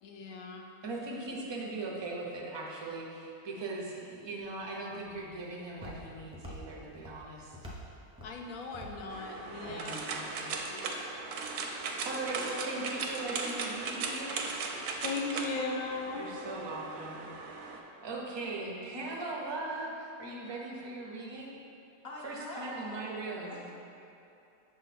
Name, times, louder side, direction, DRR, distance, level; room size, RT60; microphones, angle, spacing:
voice 1, 0.0-0.7 8.2-10.0 10.7-11.4 15.0-16.3, left 3 dB, 70° left, 2 dB, 1.0 m, -38 dB
voice 2, 0.8-7.6 9.5-10.5 10.9-11.6 12.0-14.5 16.2-17.2 18.0-21.6 22.2-23.6, right 2 dB, 40° right, -2 dB, 0.4 m, -39 dB
Walk footsteps, 4.4-10.6, equal, 5° right, 0.7 m, -49 dB
sound 1, 9.1-17.8, right 4 dB, 70° right, 0.9 m, -38 dB
voice 3, 22.0-23.7, left 1 dB, 45° left, -4 dB, 1.1 m, -44 dB
6.3 x 3.9 x 4.1 m, 2.7 s
omnidirectional pair, 1.6 m